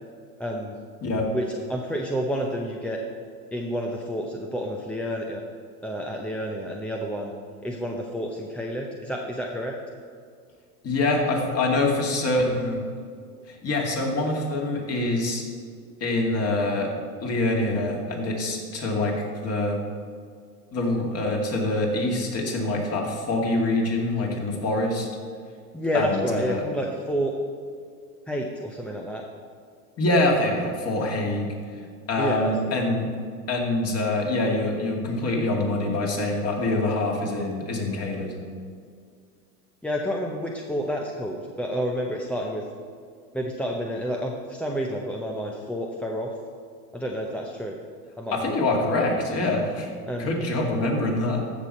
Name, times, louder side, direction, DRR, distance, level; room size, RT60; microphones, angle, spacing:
voice 1, 0.4-0.8 1.3-3.0 3.5-5.4 5.8-7.3 7.6-9.8 25.7-27.3 28.3-29.2 32.2-32.8 39.8-42.6 43.3-46.3 46.9-47.8 48.2-48.6 50.0-50.4, equal, 5° left, 0 dB, 0.6 m, -29 dB
voice 2, 10.8-12.8 13.5-15.4 16.0-16.9 17.2-19.1 19.4-19.8 20.7-25.1 25.9-26.6 30.0-31.6 32.1-33.1 33.5-38.3 48.3-49.9 50.2-51.4, left 2 dB, 30° left, 0 dB, 2.4 m, -25 dB
15.0 x 6.2 x 4.3 m, 2.1 s
hypercardioid pair, 105°, 46 cm